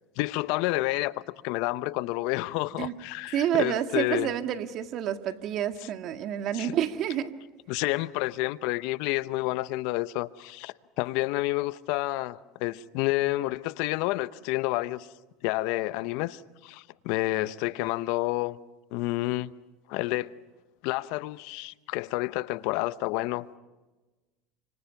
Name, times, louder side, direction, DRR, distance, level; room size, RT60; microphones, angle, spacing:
voice 1, 0.2-4.3 5.8-5.9 6.5-6.8 7.7-15.1 15.4-18.6 18.9-19.5 19.9-20.3 20.8-23.5, left 19 dB, 70° left, 0.8 m, -29 dB
voice 2, 3.3-7.3, right 10 dB, 55° right, 1.9 m, -29 dB
30.0 x 26.5 x 5.9 m
hypercardioid pair, 90°, 0 cm